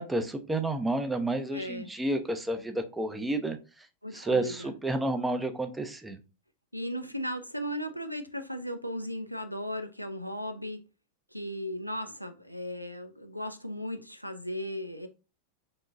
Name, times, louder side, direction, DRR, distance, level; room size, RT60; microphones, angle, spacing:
voice 1, 0.0-3.6 4.1-6.2, right 2 dB, 10° right, 0.5 m, -30 dB
voice 2, 1.5-1.9 4.0-4.7 6.7-10.8 11.3-15.1, equal, 90° right, 0.3 m, -36 dB
3.7 x 2.9 x 2.4 m
figure-of-eight pair, 90°, 0 cm